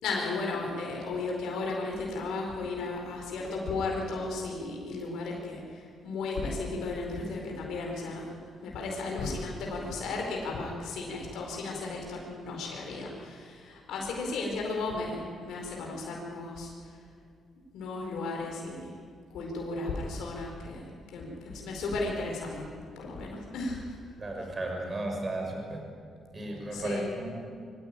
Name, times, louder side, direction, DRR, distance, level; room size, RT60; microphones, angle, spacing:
voice 1, 0.0-8.3 8.6-17.0 17.7-18.9 19.3-20.8 21.1-22.7 23.0-23.8 26.7-27.1, left 3 dB, 80° left, 0 dB, 4.6 m, -34 dB
voice 2, 24.2-25.8 26.3-27.3, right 2 dB, 30° right, 2 dB, 5.7 m, -34 dB
23.5 x 15.5 x 9.2 m, 2.2 s
cardioid pair, 90°, 0 cm